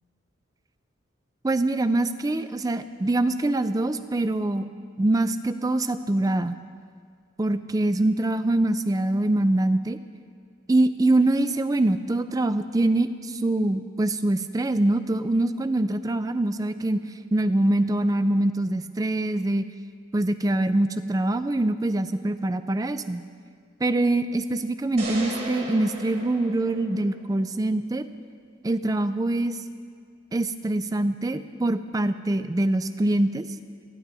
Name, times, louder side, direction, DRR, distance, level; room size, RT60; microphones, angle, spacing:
voice 1, 1.4-4.7 5.0-6.6 7.4-10.0 10.7-17.0 17.3-19.6 20.1-23.2 23.8-28.0 28.6-29.6 30.3-33.5, right 2 dB, 20° right, 11 dB, 0.3 m, -24 dB
sound 1, 25.0-27.3, right 1 dB, 45° right, 3.3 m, -34 dB
27.5 x 10.0 x 2.7 m, 2.1 s
head